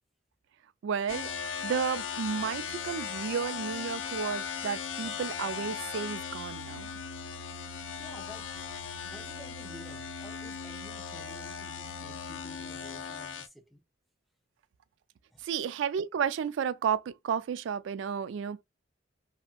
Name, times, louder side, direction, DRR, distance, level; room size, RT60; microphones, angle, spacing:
voice 1, 0.8-6.9 15.4-18.6, right 7 dB, 75° right, 0.3 m, -32 dB
sound 1, 1.1-13.5, left 7 dB, 80° left, 0.5 m, -38 dB
voice 2, 8.0-8.5 9.0-13.8 15.3-15.5, left 1 dB, ahead, 0.4 m, -51 dB
2.7 x 2.4 x 2.4 m
head